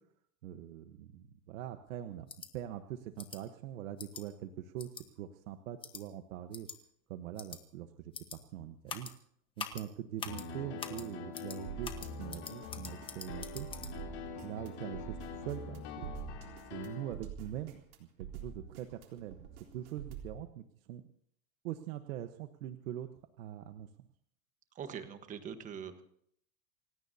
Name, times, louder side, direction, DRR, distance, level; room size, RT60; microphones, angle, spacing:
voice 1, 0.4-6.7 7.1-9.1 9.6-13.7 14.4-16.1 16.7-19.4 19.7-21.0 21.6-23.1 23.4-23.9, right 11 dB, 70° right, 8 dB, 1.3 m, -43 dB
sound 1, 2.3-2.5 3.2-3.4 4.0-4.2 4.8-5.0 5.8-6.0 6.5-6.8 7.4-7.6 8.1-8.4 8.9-9.1 9.6-9.8 10.2-10.4 10.8-11.0 11.3-11.6 11.8-13.9, left 6 dB, 10° left, 1.2 m, -43 dB
Piano, 10.3-17.1, left 6 dB, 35° left, 3.3 m, -45 dB
sound 2, 11.7-20.4, right 7 dB, 90° right, 3.9 m, -46 dB
voice 2, 24.7-26.0, right 7 dB, 20° right, 9 dB, 1.3 m, -43 dB
28.5 x 16.5 x 2.8 m, 0.66 s
supercardioid pair, 170°, 42 cm